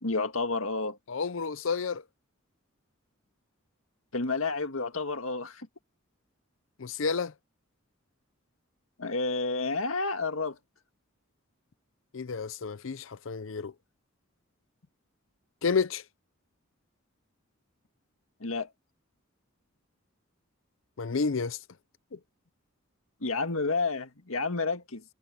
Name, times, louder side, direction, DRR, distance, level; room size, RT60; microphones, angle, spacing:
voice 1, 0.0-1.0 4.1-5.7 9.0-10.6 18.4-18.7 23.2-25.0, left 3 dB, 90° left, 1.9 m, -30 dB
voice 2, 1.1-2.0 6.8-7.3 12.1-13.7 15.6-16.0 21.0-21.6 22.1-22.2, left 5 dB, 70° left, 0.6 m, -30 dB
head